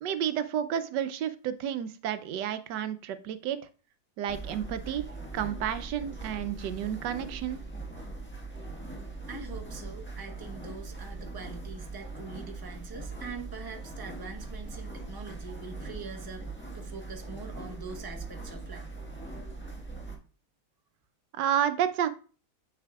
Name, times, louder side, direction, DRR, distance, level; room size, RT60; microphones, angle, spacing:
voice 1, 0.0-3.6 4.2-5.0 5.3-7.6 21.3-22.1, right 9 dB, 90° right, 12 dB, 1.3 m, -31 dB
sound 1, 4.3-20.2, right 3 dB, 5° left, 1.3 m, -41 dB
voice 2, 9.3-16.5 16.7-18.9, right 4 dB, 15° right, 3 dB, 0.9 m, -43 dB
8.1 x 6.8 x 2.3 m, 0.38 s
omnidirectional pair, 1.8 m